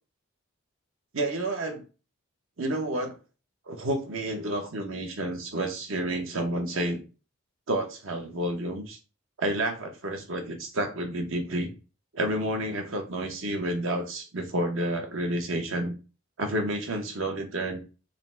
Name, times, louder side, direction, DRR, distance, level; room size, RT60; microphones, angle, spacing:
voice 1, 1.1-1.8 2.6-3.2 3.7-7.0 7.7-9.0 9.4-11.7 12.1-15.9 16.4-17.8, right 1 dB, 65° right, 4 dB, 0.9 m, -30 dB
3.7 x 2.1 x 4.3 m, 0.32 s
head